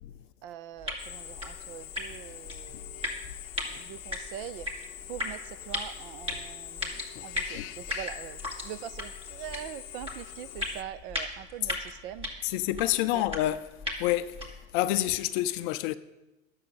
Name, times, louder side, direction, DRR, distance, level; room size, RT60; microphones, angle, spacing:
voice 1, 0.4-3.2 3.7-4.7 5.1-12.3 13.1-13.2, right 11 dB, 45° right, 0.5 m, -43 dB
sound 1, 0.8-14.7, left 2 dB, 15° right, 2.4 m, -38 dB
Drill, 1.0-10.8, left 13 dB, 85° left, 0.6 m, -44 dB
voice 2, 12.4-13.6 14.0-15.9, left 15 dB, 40° left, 0.5 m, -28 dB
10.0 x 7.3 x 9.0 m
hypercardioid pair, 130°, 41 cm